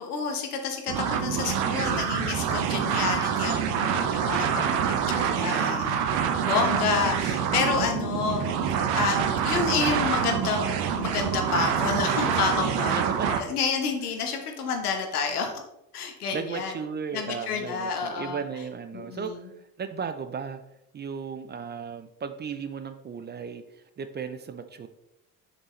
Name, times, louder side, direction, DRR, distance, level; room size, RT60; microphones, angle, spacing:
voice 1, 0.0-4.6 5.1-10.6 11.0-15.5 15.9-16.7 17.1-18.4 18.9-19.4, left 5 dB, 80° left, 4 dB, 1.1 m, -29 dB
sound 1, 0.9-13.4, right 7 dB, 60° right, 0.9 m, -26 dB
voice 2, 2.6-3.1 4.4-5.9 8.9-9.2 13.0-13.4 16.3-20.6 20.9-24.9, right 6 dB, 25° right, 10 dB, 0.5 m, -36 dB
6.6 x 5.8 x 3.1 m, 0.84 s
figure-of-eight pair, 60°, 44 cm